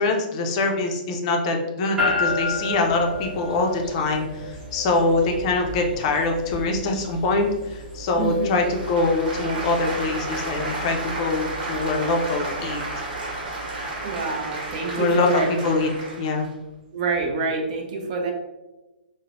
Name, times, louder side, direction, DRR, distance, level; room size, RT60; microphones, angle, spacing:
voice 1, 0.0-12.8 14.9-15.9 16.2-16.5, left 3 dB, 40° left, 2 dB, 0.4 m, -24 dB
sound 1, 2.0-16.2, left 2 dB, 15° right, 0.8 m, -34 dB
voice 2, 8.2-8.6 14.0-15.5 16.9-18.3, right 3 dB, 45° right, 1 dB, 0.6 m, -26 dB
sound 2, 8.4-16.5, right 2 dB, 65° right, 1.1 m, -32 dB
3.1 x 2.1 x 2.4 m, 1.1 s
hypercardioid pair, 150°, 5 cm